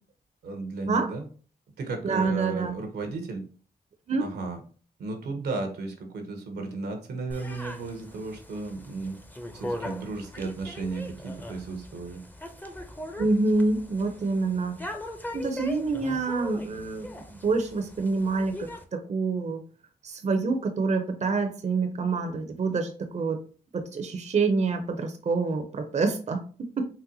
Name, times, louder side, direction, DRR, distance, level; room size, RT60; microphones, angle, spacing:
voice 1, 0.4-1.2 1.8-3.4 4.2-4.6 5.0-9.2 9.5-12.2, right 3 dB, 85° right, 5 dB, 0.7 m, -34 dB
voice 2, 2.0-2.8 4.1-4.3 13.2-14.8 15.3-19.6 20.0-23.4 23.7-26.9, right 3 dB, 45° right, 5 dB, 0.5 m, -27 dB
sound 1, 7.3-18.8, left 1 dB, 10° left, 0.6 m, -40 dB
4.0 x 2.1 x 2.6 m, 0.40 s
cardioid pair, 50°, 16 cm